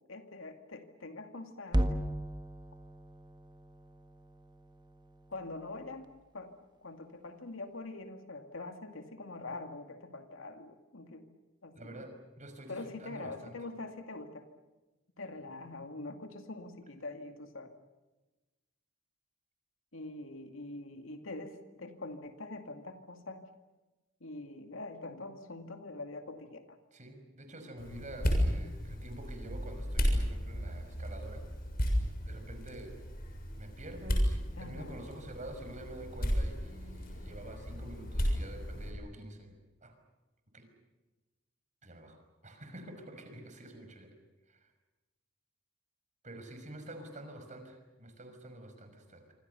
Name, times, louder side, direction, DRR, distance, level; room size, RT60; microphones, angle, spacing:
voice 1, 0.1-2.0 5.3-6.1 6.3-6.5 6.8-11.3 11.6-12.0 12.7-14.4 15.2-17.7 19.9-23.4 24.2-26.6 34.6-35.0, left 2 dB, 90° left, 6 dB, 2.3 m, -44 dB
sound 1, 1.7-6.1, equal, 20° right, 1.5 m, -37 dB
voice 2, 11.7-13.6 26.9-31.4 32.3-33.0 33.6-39.9 40.5-40.7 41.8-44.1 44.5-44.7 46.2-49.3, right 1 dB, 40° right, 6 dB, 5.7 m, -48 dB
sound 2, 27.8-38.9, equal, 50° left, 7.0 m, -34 dB
26.5 x 26.5 x 7.0 m, 1.1 s
head